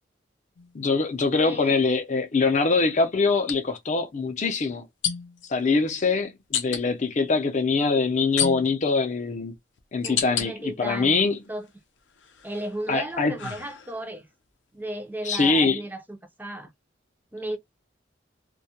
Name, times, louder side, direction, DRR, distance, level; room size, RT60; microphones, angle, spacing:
sound 1, 0.6-0.7 3.4-3.6 5.0-5.5 6.5-6.8 8.4-8.9 9.5-10.5 11.0-11.7 12.2-14.2, left 8 dB, 85° left, 0.5 m, -31 dB
voice 1, 0.7-4.9 5.5-9.5 9.9-11.4 12.9-13.3 15.2-15.8, left 4 dB, 40° left, 0.5 m, -23 dB
voice 2, 1.4-1.9 10.0-11.2 11.5-11.7 12.4-14.3 14.7-16.7 17.3-17.6, right 1 dB, 10° right, 0.4 m, -34 dB
2.3 x 2.0 x 2.7 m
head